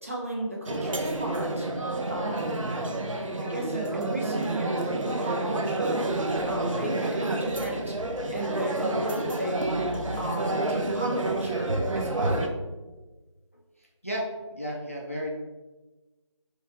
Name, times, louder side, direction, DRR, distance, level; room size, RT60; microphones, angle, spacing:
voice 1, 0.0-1.7 2.1-2.9 3.4-6.0 6.5-7.9 8.3-9.8 10.2-12.5, right 1 dB, 25° right, -2 dB, 0.6 m, -34 dB
sound 1, 0.7-12.5, right 2 dB, 85° right, 0.6 m, -29 dB
voice 2, 14.0-15.3, equal, 25° left, -2 dB, 0.4 m, -33 dB
4.8 x 2.7 x 3.5 m, 1.2 s
figure-of-eight pair, 175°, 16 cm